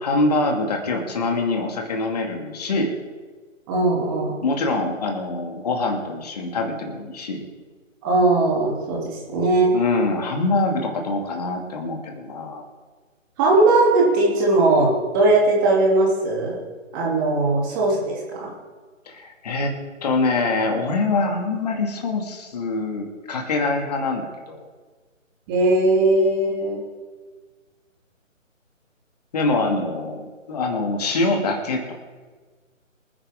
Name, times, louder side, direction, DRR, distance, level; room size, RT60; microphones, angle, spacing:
voice 1, 0.0-2.9 4.4-7.4 9.7-12.6 19.1-24.7 29.3-31.9, left 3 dB, 30° left, 2 dB, 2.2 m, -24 dB
voice 2, 3.7-4.3 8.0-9.8 13.4-16.6 16.9-18.5 25.5-26.8, right 2 dB, 15° right, -3 dB, 2.8 m, -19 dB
25.5 x 9.9 x 3.7 m, 1.4 s
figure-of-eight pair, 150°, 40 cm